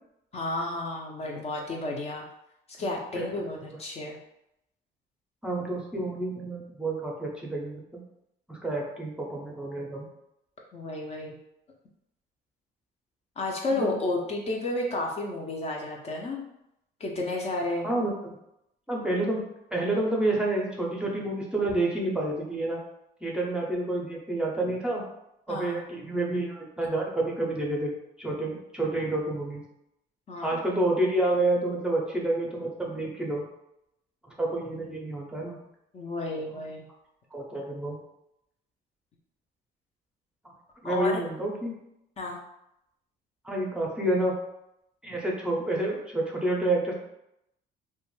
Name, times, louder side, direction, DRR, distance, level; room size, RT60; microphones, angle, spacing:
voice 1, 0.3-2.3 2.8-4.2 10.7-11.3 13.4-16.4 17.0-17.9 25.5-25.8 30.3-30.6 35.9-36.9 40.8-41.2 42.2-42.4, left 2 dB, 40° left, -1 dB, 0.5 m, -32 dB
voice 2, 5.4-8.0 8.5-10.1 13.7-14.0 17.8-18.4 18.9-22.8 23.2-25.0 25.5-29.6 30.4-33.5 34.4-35.6 37.3-38.0 40.8-41.7 43.4-44.4 45.0-46.9, right 2 dB, 5° right, -2 dB, 0.6 m, -29 dB
2.4 x 2.2 x 3.1 m, 0.82 s
cardioid pair, 110°, 17 cm